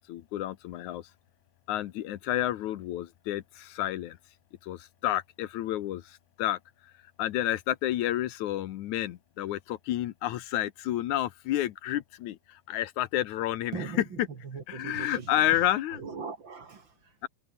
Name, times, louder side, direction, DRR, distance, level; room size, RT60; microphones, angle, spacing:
voice 1, 0.1-1.1 1.7-4.2 4.6-6.6 7.2-14.3 14.7-16.0 17.2-17.3, left 13 dB, 80° left, 2.4 m, -30 dB
voice 2, 13.7-15.3 15.9-17.3, right 5 dB, 40° right, 2.8 m, -40 dB
omnidirectional pair, 3.4 m